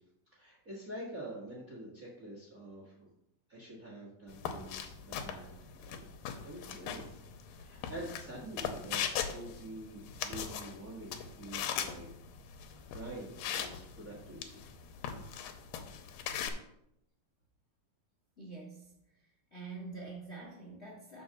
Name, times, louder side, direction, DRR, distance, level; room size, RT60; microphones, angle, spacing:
voice 1, 0.3-3.1 3.5-5.5 5.7-6.1 6.4-12.1 12.9-14.6, right 1 dB, 40° right, -4 dB, 1.2 m, -46 dB
sound 1, 4.3-16.5, left 8 dB, 90° left, 2.4 m, -40 dB
voice 2, 18.4-21.2, right 3 dB, 50° left, -5 dB, 0.8 m, -46 dB
6.6 x 4.5 x 6.4 m, 0.79 s
omnidirectional pair, 3.9 m